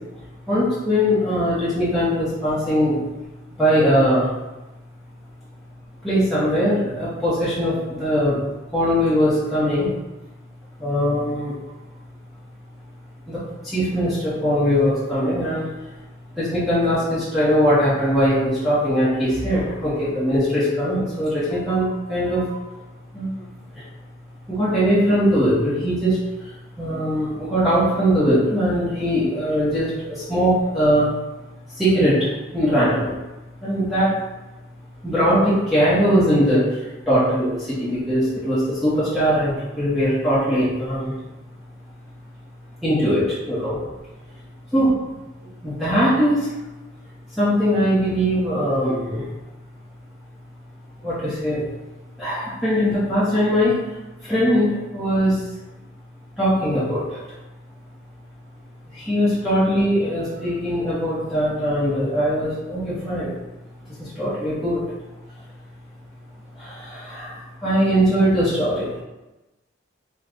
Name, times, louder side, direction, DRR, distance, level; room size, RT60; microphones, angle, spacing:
voice 1, 0.5-3.0 3.6-4.3 6.0-9.9 10.8-11.5 13.3-15.7 16.3-22.6 23.1-23.4 23.7-23.8 24.5-31.1 31.7-33.2 33.6-34.2 35.0-41.1 42.8-43.8 44.7-45.1 45.4-46.5 47.3-49.3 51.0-51.6 52.2-53.8 54.2-55.5 56.4-57.2 58.9-63.3 64.0-64.8 66.6-68.9, equal, ahead, -12 dB, 1.0 m, -21 dB
3.7 x 2.3 x 3.7 m, 1.0 s
head